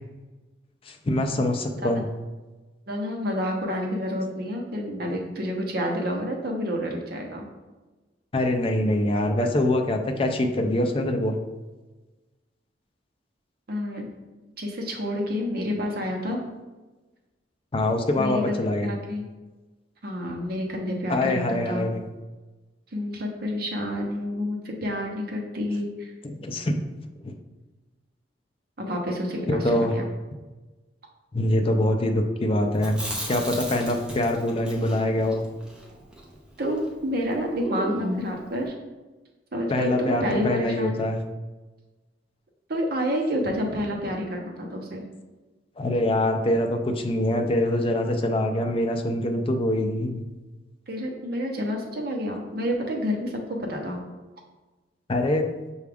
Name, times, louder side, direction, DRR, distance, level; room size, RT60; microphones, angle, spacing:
voice 1, 0.9-2.0 8.3-11.4 17.7-18.9 21.1-22.0 26.2-26.7 27.2-27.3 29.5-30.0 31.3-35.4 39.7-41.2 45.8-50.2 55.1-55.5, left 1 dB, 30° left, 4 dB, 0.4 m, -24 dB
voice 2, 2.9-7.5 13.7-14.1 14.6-16.4 18.2-19.2 20.0-21.8 22.9-26.1 28.8-30.0 36.6-38.7 39.5-41.0 42.7-45.1 50.9-54.0, equal, 55° right, 1 dB, 0.7 m, -29 dB
Chewing mastication, 32.7-36.9 37.2-37.3 37.6-38.3, right 1 dB, 5° right, 0.7 m, -34 dB
5.8 x 2.3 x 3.4 m, 1.2 s
head